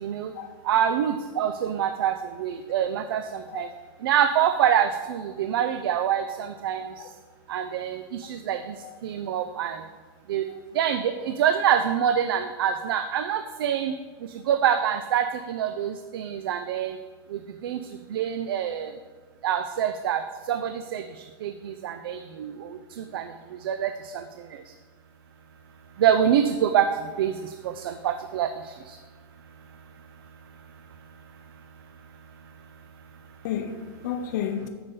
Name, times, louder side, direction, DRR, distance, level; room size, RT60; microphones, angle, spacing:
voice 1, 0.7-2.1 2.4-3.2 3.5-3.7 4.0-6.8 7.5-8.6 9.0-9.8 10.3-10.4 10.8-13.9 14.5-16.9 17.3-17.8 18.1-18.9 19.4-20.2 20.5-21.0 21.4-22.5 23.1-23.2 23.6-23.9 26.0-26.9 27.2-27.3 27.8-28.5, right 9 dB, 90° right, 0.5 m, -25 dB
voice 2, 33.4-34.7, left 8 dB, 55° left, 0.5 m, -32 dB
8.0 x 6.7 x 3.8 m
supercardioid pair, 170°, 12 cm